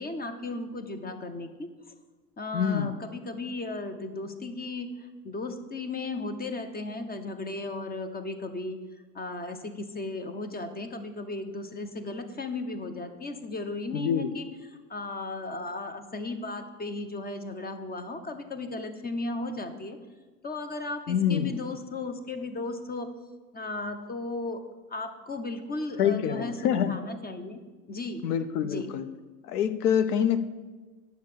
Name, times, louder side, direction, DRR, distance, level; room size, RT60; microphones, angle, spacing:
voice 1, 0.0-1.7 2.4-8.8 9.1-20.0 20.4-23.1 23.5-24.6 24.9-27.6 27.9-28.3 28.6-28.9, left 2 dB, 20° left, 8 dB, 1.0 m, -35 dB
voice 2, 2.5-2.9 13.9-14.3 21.1-21.6 26.0-26.9 28.2-29.1 29.4-30.4, left 8 dB, 75° left, 11 dB, 0.9 m, -26 dB
9.5 x 6.6 x 6.7 m, 1.3 s
hypercardioid pair, 90°, 46 cm